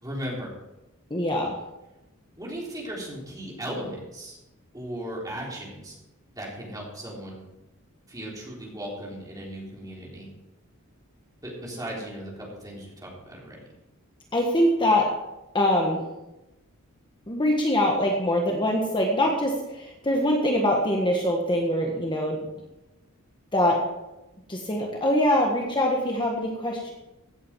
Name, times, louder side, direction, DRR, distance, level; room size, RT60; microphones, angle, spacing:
voice 1, 0.0-0.5 2.4-4.4 4.7-5.9 6.4-7.4 8.1-10.3 11.4-13.6, right 1 dB, 15° right, -3 dB, 3.6 m, -36 dB
voice 2, 1.1-1.6 14.3-15.1 15.5-16.0 17.3-22.4 23.5-23.8 24.5-26.9, left 1 dB, 20° left, 0 dB, 1.5 m, -23 dB
16.5 x 8.6 x 4.6 m, 0.97 s
head